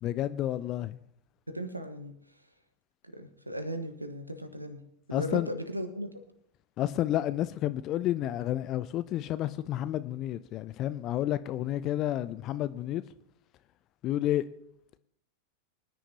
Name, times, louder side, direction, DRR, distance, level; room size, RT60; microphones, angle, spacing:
voice 1, 0.0-1.0 5.1-5.5 6.8-13.0 14.0-14.5, left 13 dB, 35° left, 0.4 m, -30 dB
voice 2, 1.5-2.1 3.1-4.8 5.1-6.2, equal, 85° right, 1.3 m, -37 dB
24.5 x 9.9 x 2.8 m
figure-of-eight pair, 90°, 0 cm